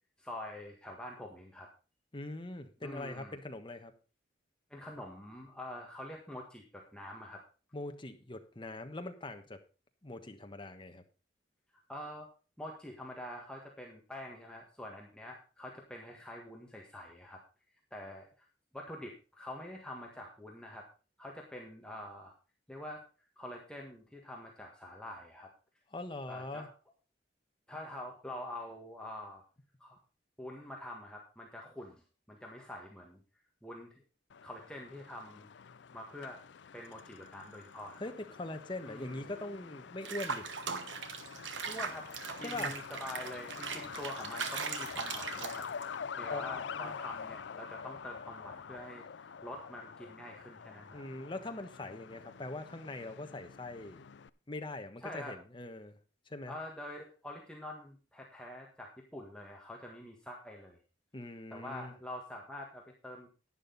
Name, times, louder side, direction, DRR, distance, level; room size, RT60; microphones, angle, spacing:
voice 1, 0.2-1.7 2.8-3.3 4.7-7.4 11.9-12.3 12.6-17.4 17.9-18.5 18.7-20.9 21.2-22.3 22.7-23.0 23.4-25.5 26.3-26.7 27.7-29.4 29.8-30.0 30.4-32.0 32.3-33.2 33.6-34.0 34.4-35.5 35.9-36.4 36.7-38.0 38.8-39.2 41.6-42.1 42.4-45.7 46.2-51.0 55.0-55.4 56.5-60.8 61.5-63.3, left 1 dB, 5° left, -1 dB, 1.7 m, -46 dB
voice 2, 2.1-3.9 7.7-9.6 10.0-11.0 25.9-26.7 38.0-40.5 42.4-42.7 46.3-46.9 50.9-54.0 54.5-56.0 56.3-56.5 61.1-61.9, left 2 dB, 25° left, 6 dB, 1.3 m, -42 dB
Truck, 34.3-54.3, left 6 dB, 70° left, 0.5 m, -46 dB
Water / Bathtub (filling or washing), 40.0-46.0, right 5 dB, 85° right, 1.3 m, -40 dB
11.0 x 10.0 x 4.1 m, 0.34 s
head